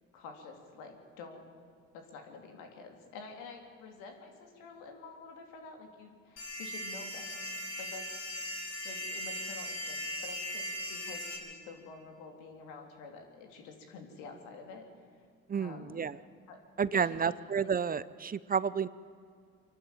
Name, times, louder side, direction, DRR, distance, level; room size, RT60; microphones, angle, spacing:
voice 1, 0.1-1.5 1.9-7.5 7.8-8.1 8.4-8.5 8.8-14.9 15.5-16.0 16.5-16.6 16.9-17.3, left 4 dB, 90° left, 3 dB, 3.1 m, -49 dB
sound 1, 6.4-11.4, left 1 dB, 60° left, 4.7 m, -39 dB
voice 2, 15.5-16.2 16.8-18.9, right 6 dB, 30° right, 17 dB, 0.6 m, -31 dB
24.5 x 12.0 x 9.0 m, 2.2 s
supercardioid pair, 80°, 30 cm